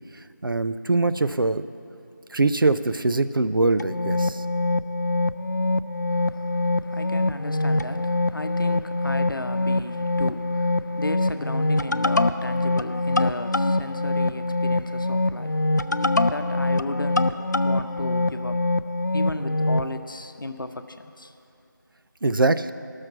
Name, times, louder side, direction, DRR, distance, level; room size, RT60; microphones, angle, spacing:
voice 1, 0.4-1.6 2.3-4.4 22.2-22.7, right 3 dB, 85° right, 0.5 m, -22 dB
sound 1, 3.8-19.9, left 2 dB, 60° left, 0.4 m, -24 dB
voice 2, 6.1-18.8 19.1-21.3, left 2 dB, 80° left, 0.8 m, -35 dB
14.0 x 6.5 x 6.0 m
figure-of-eight pair, 180°, 11 cm